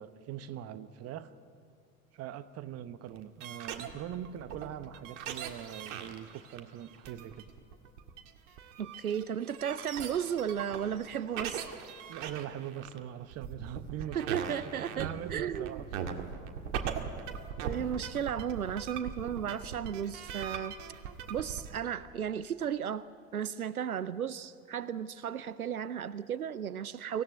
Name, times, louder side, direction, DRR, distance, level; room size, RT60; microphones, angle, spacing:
voice 1, 0.0-1.3 2.1-7.4 12.1-16.3, right 11 dB, 35° right, 13 dB, 1.0 m, -42 dB
sound 1, 3.1-21.8, right 8 dB, 55° right, 1.9 m, -40 dB
voice 2, 8.8-11.6 14.1-15.8 17.6-20.8 21.3-23.1 23.3-27.2, right 8 dB, 85° right, 17 dB, 0.6 m, -34 dB
24.5 x 16.5 x 9.5 m, 2.3 s
figure-of-eight pair, 75°, 42 cm